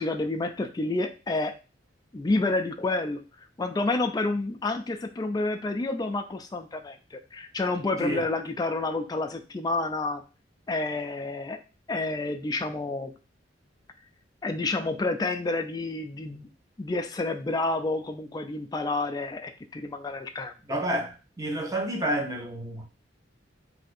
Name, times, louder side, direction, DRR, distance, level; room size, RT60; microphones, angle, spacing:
voice 1, 0.0-1.5 2.1-3.2 3.6-10.2 10.7-11.6 11.9-13.1 14.4-16.5 16.8-20.5, left 2 dB, 20° left, 0.3 m, -29 dB
voice 2, 20.7-22.8, right 1 dB, 20° right, 0.7 m, -29 dB
2.7 x 2.5 x 4.2 m
head